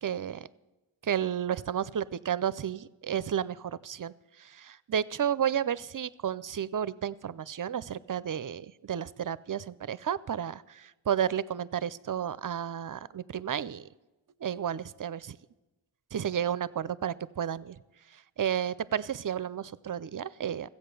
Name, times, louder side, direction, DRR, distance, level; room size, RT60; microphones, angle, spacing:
voice 1, 0.0-0.5 1.0-4.1 4.4-13.9 14.4-15.4 16.1-17.8 18.4-20.7, right 9 dB, 45° right, 19 dB, 0.5 m, -32 dB
15.0 x 8.3 x 6.8 m, 1.0 s
wide cardioid pair, 55°, 48 cm